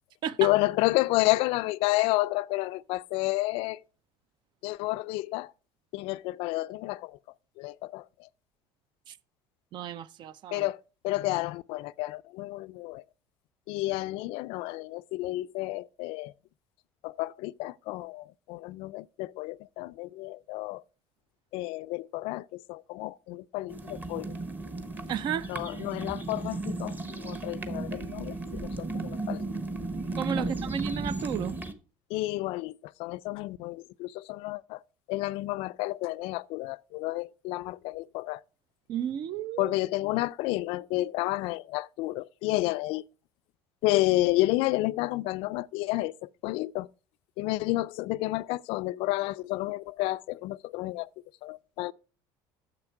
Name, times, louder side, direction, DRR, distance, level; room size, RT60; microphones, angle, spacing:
voice 1, 0.4-3.8 4.6-5.5 5.9-7.2 7.6-8.3 10.5-13.0 13.7-16.3 17.0-20.8 21.5-24.3 25.5-29.4 30.4-30.5 32.1-32.7 33.0-34.8 35.1-38.4 39.6-43.0 43.8-46.9 47.4-51.1 51.4-51.9, left 19 dB, 75° left, 0.4 m, -30 dB
voice 2, 9.7-10.7 25.1-25.5 30.2-31.6 38.9-39.7, right 9 dB, 50° right, 0.5 m, -33 dB
sound 1, 23.7-31.7, right 2 dB, 20° right, 1.0 m, -35 dB
9.8 x 7.1 x 4.5 m
cardioid pair, 125°, 10 cm